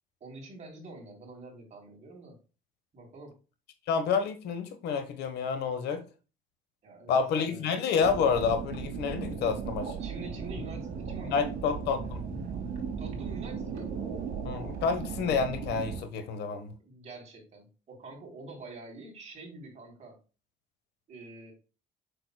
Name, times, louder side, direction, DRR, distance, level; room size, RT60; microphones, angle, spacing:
voice 1, 0.2-2.4 2.9-3.4 6.8-7.7 10.0-11.5 13.0-13.9 16.4-20.2 21.1-21.5, right 2 dB, 40° right, 3.2 m, -46 dB
voice 2, 3.9-6.0 7.1-9.9 11.2-12.2 14.4-16.7, left 6 dB, 80° left, 1.2 m, -29 dB
sound 1, 8.0-16.0, right 6 dB, 60° right, 3.3 m, -36 dB
6.7 x 6.3 x 2.2 m
cardioid pair, 110°, 17 cm